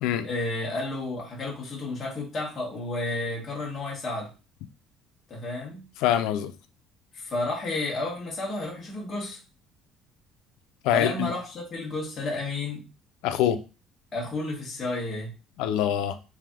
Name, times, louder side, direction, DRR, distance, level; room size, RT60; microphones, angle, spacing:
voice 1, 0.2-4.3 5.3-5.8 7.1-9.4 10.9-12.9 14.1-15.3, left 2 dB, 20° left, -4 dB, 1.2 m, -31 dB
voice 2, 6.0-6.5 10.8-11.3 13.2-13.6 15.6-16.2, left 10 dB, 85° left, 9 dB, 0.5 m, -24 dB
3.4 x 2.7 x 3.6 m, 0.31 s
cardioid pair, 175°, 0 cm